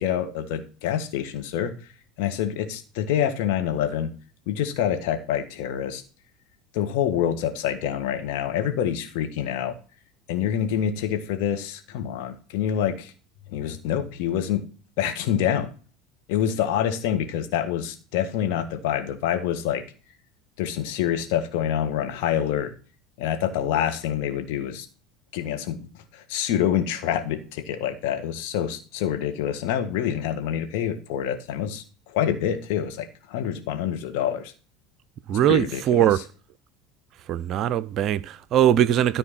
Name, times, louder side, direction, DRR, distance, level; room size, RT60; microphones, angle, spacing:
voice 1, 0.0-1.7 2.2-4.1 4.5-6.0 6.7-9.7 10.3-13.1 13.5-14.6 15.0-15.7 16.3-19.8 20.6-22.7 23.2-24.9 25.3-25.9 26.1-31.8 32.1-34.5 35.5-36.1, left 9 dB, 60° left, 1.7 m, -26 dB
voice 2, 35.3-36.2 37.3-39.2, right 11 dB, 45° right, 0.5 m, -21 dB
13.0 x 4.4 x 5.9 m
figure-of-eight pair, 70°, 0 cm